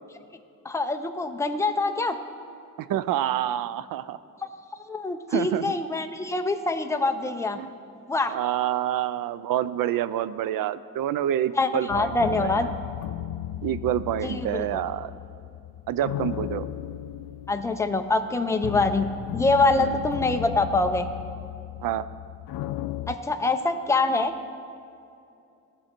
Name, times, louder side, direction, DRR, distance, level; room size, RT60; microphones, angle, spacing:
voice 1, 0.6-2.2 4.9-7.6 8.1-8.3 11.6-12.7 14.2-14.7 17.5-19.1 19.3-21.1 23.1-24.3, left 3 dB, 10° left, 6 dB, 0.4 m, -24 dB
voice 2, 2.8-4.2 5.3-5.7 7.5-7.7 8.3-12.7 13.6-15.1 15.9-16.6 19.8-20.1 21.8-22.1, right 11 dB, 75° right, 16 dB, 0.5 m, -27 dB
sound 1, 11.9-23.1, left 12 dB, 85° left, 0.5 m, -35 dB
18.0 x 6.5 x 4.4 m, 2.6 s
cardioid pair, 165°, 34 cm